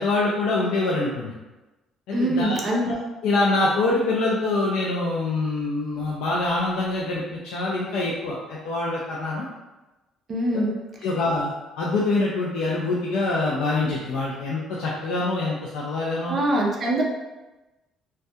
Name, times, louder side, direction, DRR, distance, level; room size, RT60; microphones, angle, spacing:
voice 1, 0.0-1.3 2.1-2.6 2.8-3.0 3.2-9.5 10.5-10.6 11.0-16.4, left 2 dB, 85° left, -5 dB, 0.4 m, -25 dB
voice 2, 2.1-2.8 10.3-10.7 16.3-17.0, right 1 dB, 30° right, -1 dB, 0.4 m, -23 dB
2.2 x 2.2 x 2.6 m, 1.1 s
cardioid pair, 170°, 0 cm